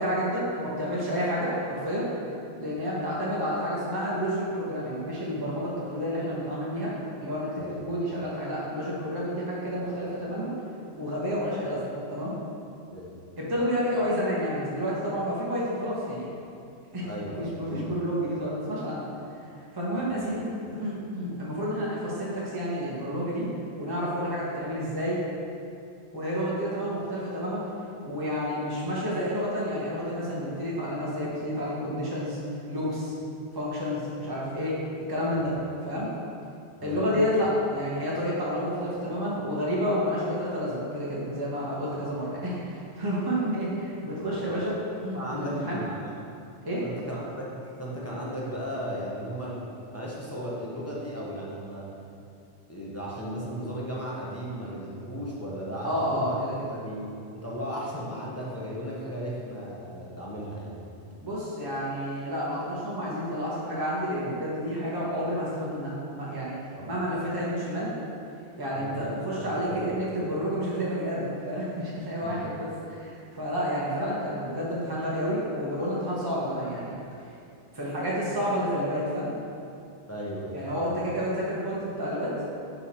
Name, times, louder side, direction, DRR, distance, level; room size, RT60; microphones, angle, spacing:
voice 1, 0.0-2.1 2.6-6.9 7.2-7.5 7.8-10.5 11.0-12.3 13.4-16.3 16.9-19.1 19.7-23.5 23.8-25.2 26.1-27.6 28.0-32.4 32.7-33.1 33.5-34.8 35.1-35.6 35.8-36.1 36.8-45.8 46.6-46.8 55.8-56.7 61.2-66.6 66.8-67.9 68.6-76.9 77.7-79.3 80.5-82.3, equal, 20° right, -7 dB, 1.0 m, -30 dB
voice 2, 17.0-17.9 20.0-20.1 35.4-35.5 36.8-37.0 45.1-46.1 46.8-47.5 47.8-49.7 49.9-51.9 52.7-56.4 56.7-57.1 57.3-60.8 66.8-66.9 68.7-69.8 72.2-72.4 80.1-80.8, equal, 15° left, -6 dB, 0.8 m, -36 dB
5.5 x 4.7 x 4.2 m, 2.6 s
omnidirectional pair, 1.2 m